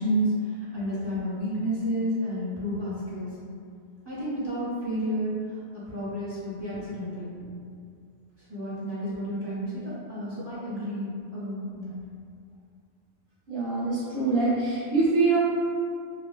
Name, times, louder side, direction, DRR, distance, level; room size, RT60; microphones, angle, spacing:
voice 1, 0.0-3.3 4.0-7.3 8.5-11.1 11.3-12.0, equal, 25° right, -10 dB, 0.6 m, -31 dB
voice 2, 13.5-15.4, right 3 dB, 50° right, -8 dB, 1.0 m, -24 dB
2.9 x 2.5 x 2.2 m, 2.3 s
omnidirectional pair, 1.2 m